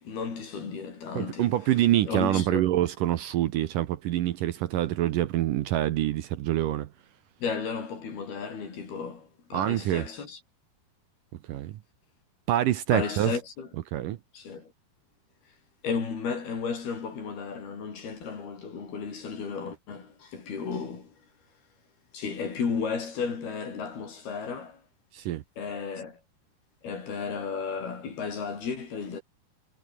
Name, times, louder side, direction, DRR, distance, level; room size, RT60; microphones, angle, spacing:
voice 1, 0.0-1.7 2.1-2.7 7.4-10.4 12.9-13.7 14.3-14.7 15.8-21.2 22.1-24.8 25.6-26.2 26.8-29.2, left 5 dB, 75° left, 7.3 m, -34 dB
voice 2, 1.1-6.9 9.5-10.0 11.5-11.8 12.5-13.3 13.9-14.2 25.1-25.4, right 13 dB, 70° right, 2.3 m, -26 dB
omnidirectional pair, 4.5 m